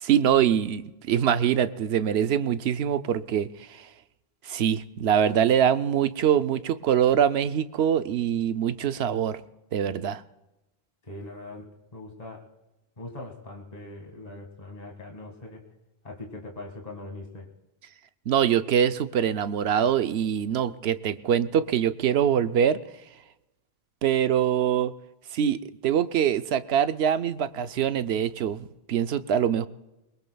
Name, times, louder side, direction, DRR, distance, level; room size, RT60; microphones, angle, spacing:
voice 1, 0.0-3.8 4.4-9.4 9.7-10.2 18.3-22.8 24.0-24.9 25.3-29.7, right 9 dB, 80° right, 12 dB, 0.9 m, -24 dB
voice 2, 11.1-12.4 13.0-15.6 16.0-17.5, left 2 dB, 40° left, 1 dB, 2.1 m, -41 dB
22.5 x 21.5 x 2.3 m, 0.98 s
omnidirectional pair, 1.1 m